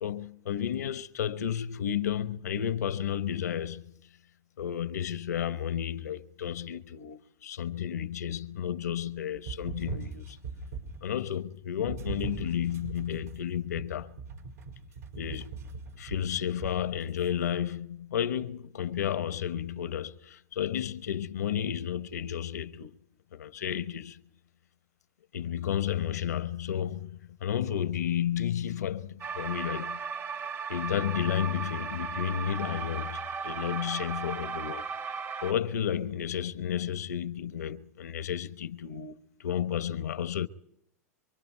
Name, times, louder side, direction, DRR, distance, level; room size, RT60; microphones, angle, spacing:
voice 1, 0.0-3.8 4.6-10.4 11.0-14.1 15.1-15.5 16.0-23.0 23.3-24.2 25.3-30.0 30.7-34.9 35.4-40.5, left 9 dB, 85° left, 1.0 m, -32 dB
sound 1, 9.3-11.1 11.8-17.3, right 4 dB, 80° right, 5.0 m, -40 dB
sound 2, 29.2-35.5, right 6 dB, 25° right, 0.9 m, -36 dB
26.0 x 24.5 x 4.6 m
hypercardioid pair, 100°, 9 cm